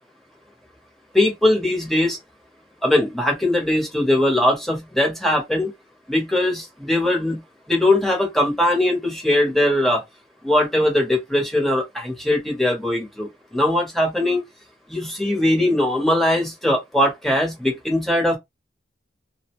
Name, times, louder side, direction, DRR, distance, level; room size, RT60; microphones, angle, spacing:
voice 1, 1.1-2.2 2.8-5.7 6.1-7.4 7.7-10.0 10.4-14.4 14.9-18.4, left 1 dB, ahead, 0.8 m, -20 dB
2.5 x 2.0 x 2.9 m
head